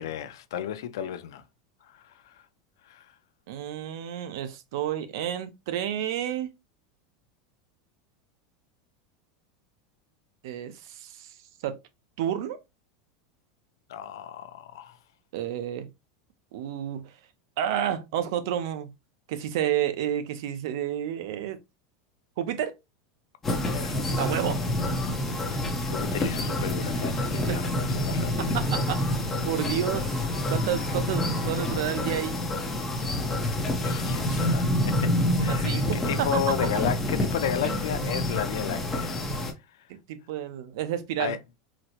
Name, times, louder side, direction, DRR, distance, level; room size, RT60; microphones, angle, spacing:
voice 1, 0.0-1.4 1.9-2.4 2.9-3.1 13.9-15.0 23.6-24.4 25.9-28.6 33.8-35.1 35.4-39.2 41.2-41.4, left 10 dB, 90° left, 0.4 m, -33 dB
voice 2, 3.5-6.5 10.4-11.3 11.6-11.8 12.2-12.6 15.3-15.9 16.5-17.1 17.6-18.9 19.3-21.6 22.4-22.7 24.2-24.9 25.5-25.6 27.4-27.6 28.4-30.2 30.5-32.4 35.4-36.5 39.9-41.4, right 10 dB, 65° right, 0.6 m, -30 dB
sound 1, 23.4-39.5, left 1 dB, 15° left, 0.6 m, -27 dB
4.0 x 2.1 x 2.8 m
supercardioid pair, 160°, 2 cm